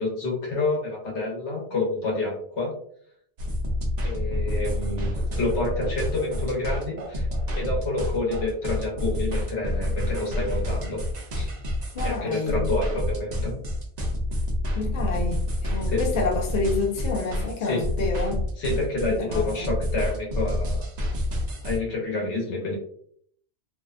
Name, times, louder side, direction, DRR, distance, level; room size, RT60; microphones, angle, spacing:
voice 1, 0.0-2.7 4.0-7.3 7.6-11.0 11.3-11.5 12.0-13.6 15.8-16.0 17.7-17.8 18.6-20.9 21.6-22.8, left 2 dB, 85° left, -1 dB, 1.2 m, -28 dB
sound 1, 3.4-21.8, left 1 dB, 50° right, 0.5 m, -28 dB
voice 2, 11.9-12.7 14.7-18.5 19.1-19.7, left 3 dB, 55° left, -1 dB, 0.8 m, -29 dB
2.6 x 2.2 x 2.4 m, 0.63 s
omnidirectional pair, 1.1 m